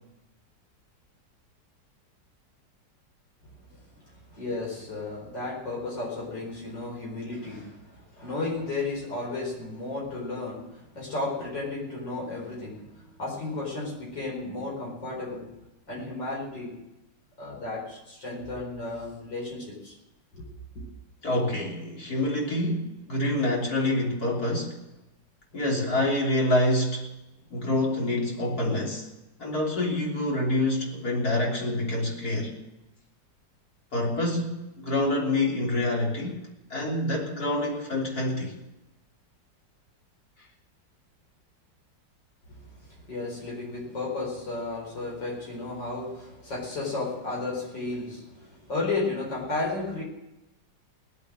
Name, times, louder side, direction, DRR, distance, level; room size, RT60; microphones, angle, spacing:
voice 1, 3.7-15.6 15.9-16.8 17.4-20.0 20.3-20.5 42.5-50.0, left 3 dB, 80° left, -3 dB, 5.2 m, -34 dB
voice 2, 21.2-24.8 25.5-27.1 27.5-29.1 29.4-32.6 33.9-36.4 36.7-38.6, left 1 dB, 55° left, -2 dB, 3.9 m, -27 dB
19.0 x 8.6 x 7.7 m, 0.94 s
omnidirectional pair, 1.9 m